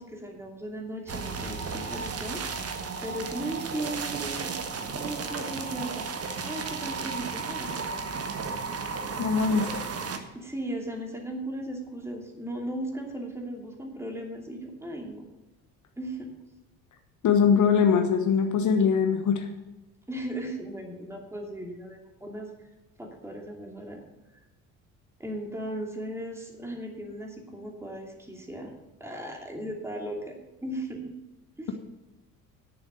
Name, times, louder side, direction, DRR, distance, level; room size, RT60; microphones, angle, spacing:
voice 1, 0.0-2.7 3.0-4.5 4.9-6.1 6.4-8.0 10.3-15.2 16.0-16.3 20.1-22.5 23.0-24.0 25.2-28.7 29.0-31.1 31.6-31.8, right 1 dB, 5° right, 1 dB, 2.7 m, -37 dB
sound 1, 1.1-10.2, right 5 dB, 35° right, 1.4 m, -34 dB
voice 2, 9.2-9.9 17.2-19.5, left 6 dB, 40° left, 5 dB, 1.2 m, -22 dB
11.0 x 7.1 x 6.6 m, 1.1 s
figure-of-eight pair, 55°, 43 cm